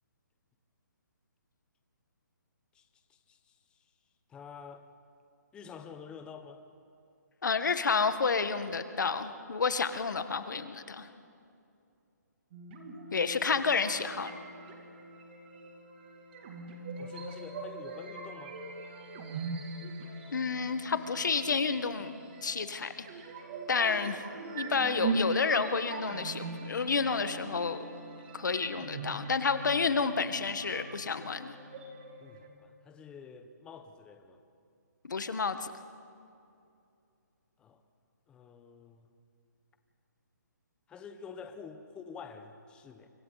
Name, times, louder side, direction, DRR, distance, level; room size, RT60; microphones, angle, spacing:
voice 1, 3.1-3.8 4.3-4.8 5.5-6.6 17.0-18.6 32.2-34.4 37.6-37.8 38.3-39.1 40.9-43.1, left 6 dB, 10° left, 8 dB, 0.9 m, -48 dB
voice 2, 7.4-11.1 13.1-14.3 20.3-22.1 22.4-23.0 23.7-24.2 24.5-27.8 28.3-31.5 35.0-35.7, left 5 dB, 80° left, 10 dB, 1.5 m, -30 dB
sound 1, 12.5-32.5, right 3 dB, 35° right, 2.7 m, -41 dB
29.0 x 25.5 x 4.1 m, 2.5 s
hypercardioid pair, 160°, 10 cm